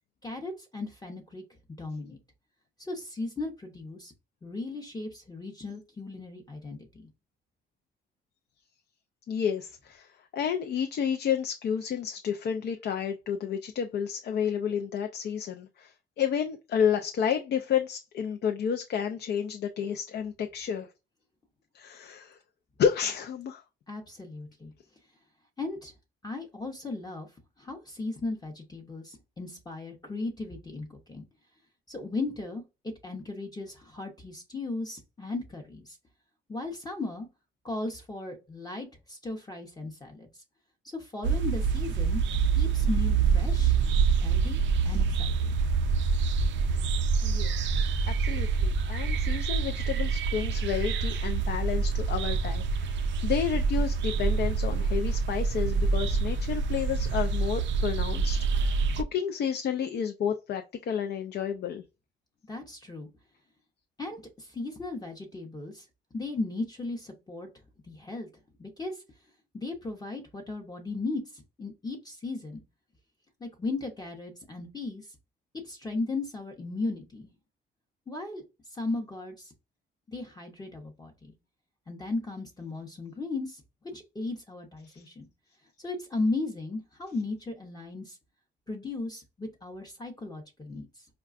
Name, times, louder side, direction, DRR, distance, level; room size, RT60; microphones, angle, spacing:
voice 1, 0.2-1.4 1.8-2.2 2.8-4.1 4.4-7.1 23.9-24.7 25.6-25.9 26.2-27.3 27.6-31.3 31.9-32.6 33.0-36.0 36.5-37.3 37.6-40.4 40.8-42.2 42.6-43.7 44.2-45.6 62.5-63.1 64.0-65.9 66.1-67.5 67.9-68.3 68.6-69.0 69.5-72.6 73.4-75.2 75.6-77.3 78.1-78.4 78.7-79.5 80.1-81.3 81.9-83.6 83.9-85.3 85.8-88.2 88.7-91.1, left 3 dB, 20° left, 0.7 m, -36 dB
voice 2, 9.3-20.9 21.7-22.4 22.8-23.6 47.2-47.5 48.1-61.8 84.9-85.0, left 8 dB, 60° left, 0.4 m, -31 dB
sound 1, 41.2-59.0, right 5 dB, 70° right, 0.4 m, -26 dB
4.6 x 2.2 x 2.4 m
cardioid pair, 90°, 20 cm